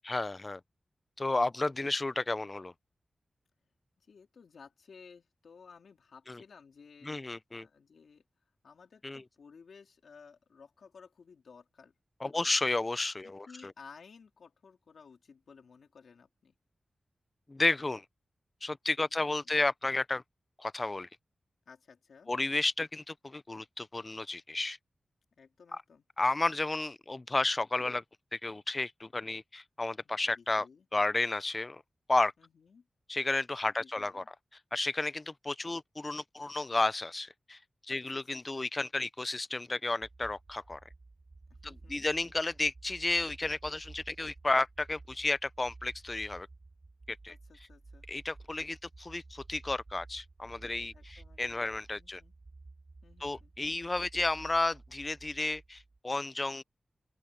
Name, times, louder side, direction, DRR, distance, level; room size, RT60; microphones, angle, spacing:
voice 1, 0.0-0.6 1.2-2.7 6.3-6.4 7.0-7.7 9.0-9.2 12.2-13.7 17.5-18.0 18.6-20.2 20.6-21.1 22.3-24.8 25.7-25.8 26.2-28.0 28.3-30.7 30.9-31.8 32.1-32.3 33.1-34.2 34.7-37.6 37.9-40.8 41.6-46.5 47.1-47.3 48.1-52.2 53.2-56.6, left 2 dB, 25° left, 0.6 m, -32 dB
voice 2, 4.0-7.2 7.6-8.2 8.6-12.5 13.2-16.6 19.0-19.5 21.7-22.3 25.4-26.1 30.4-30.9 32.4-32.9 33.6-34.3 37.9-38.7 41.5-42.1 47.3-48.1 50.9-51.7 51.9-52.3 53.0-53.5, left 5 dB, 80° left, 3.8 m, -56 dB
sound 1, 40.0-56.0, right 3 dB, 35° right, 2.2 m, -53 dB
open air
wide cardioid pair, 135°, 0 cm